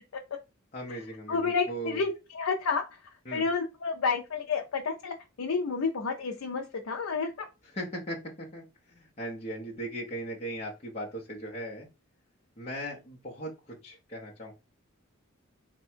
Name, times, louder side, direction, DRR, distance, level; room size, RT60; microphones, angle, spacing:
voice 1, 0.7-2.0 3.3-3.4 7.7-11.9 12.6-14.5, right 1 dB, 30° left, -3 dB, 0.7 m, -38 dB
voice 2, 1.3-3.0 3.3-7.5, left 4 dB, 70° left, 3 dB, 0.5 m, -30 dB
3.4 x 2.2 x 4.3 m, 0.27 s
head